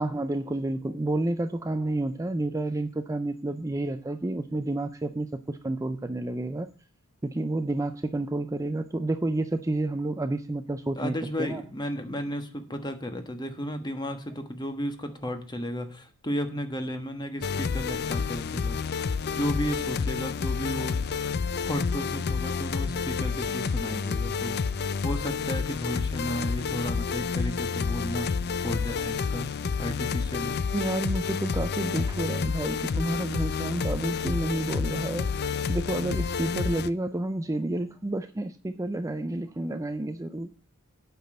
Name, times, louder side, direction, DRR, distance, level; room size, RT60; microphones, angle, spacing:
voice 1, 0.0-6.7 7.2-11.6 30.7-35.3 35.7-40.5, right 2 dB, 15° right, 9 dB, 0.4 m, -30 dB
voice 2, 11.0-21.0 21.6-29.5 29.8-30.5, equal, 20° left, 7 dB, 1.2 m, -34 dB
sound 1, 17.4-36.9, left 5 dB, 50° left, 0.4 m, -29 dB
8.4 x 6.0 x 7.5 m, 0.42 s
head